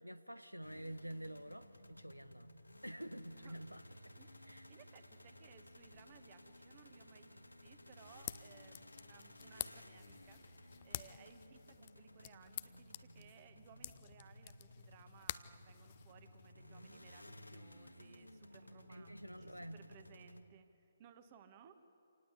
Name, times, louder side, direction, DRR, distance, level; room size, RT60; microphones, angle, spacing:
voice 1, 0.0-2.5 2.8-3.8 4.5-4.7 18.9-19.8, right 1 dB, 90° right, 13 dB, 1.0 m, -48 dB
sound 1, 0.6-20.4, left 1 dB, 80° left, 1.7 m, -58 dB
voice 2, 4.2-21.8, right 8 dB, 30° right, 9 dB, 1.6 m, -62 dB
sound 2, 7.9-16.5, left 13 dB, 30° left, 0.6 m, -50 dB
27.0 x 19.0 x 8.3 m, 2.7 s
figure-of-eight pair, 140°, 0 cm